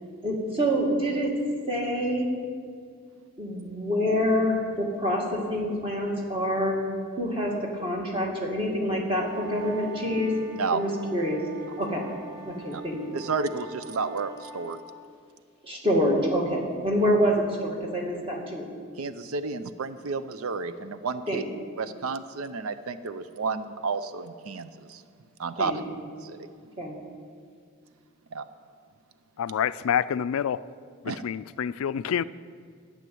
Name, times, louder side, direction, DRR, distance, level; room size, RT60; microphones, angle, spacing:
voice 1, 0.2-1.3 1.7-2.3 3.4-6.8 7.2-10.3 10.7-11.4 11.8-12.1 12.4-13.2 15.6-18.6 21.3-21.4 25.6-25.8 26.8-27.0, equal, 25° right, -1 dB, 2.1 m, -26 dB
sound 1, 9.3-14.8, right 5 dB, 20° left, 0.9 m, -44 dB
voice 2, 13.1-14.8 19.0-21.4 21.8-25.0 25.4-25.7 26.2-26.5 28.3-28.5 31.1-31.2, right 4 dB, 85° right, 11 dB, 0.6 m, -31 dB
voice 3, 29.4-30.6 31.0-32.2, left 8 dB, 80° left, 16 dB, 0.3 m, -27 dB
12.0 x 6.5 x 9.3 m, 2.1 s
head